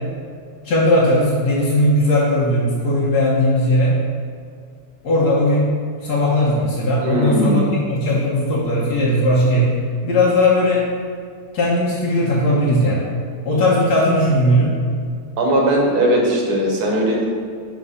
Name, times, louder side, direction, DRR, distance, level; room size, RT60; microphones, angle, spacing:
voice 1, 0.6-3.9 5.0-5.7 6.0-9.7 10.0-10.8 11.5-13.1 13.4-14.7, left 1 dB, 85° left, -6 dB, 1.5 m, -17 dB
voice 2, 7.0-7.7 15.4-17.3, right 1 dB, 80° right, -1 dB, 1.5 m, -18 dB
4.9 x 3.9 x 5.4 m, 2.2 s
omnidirectional pair, 1.6 m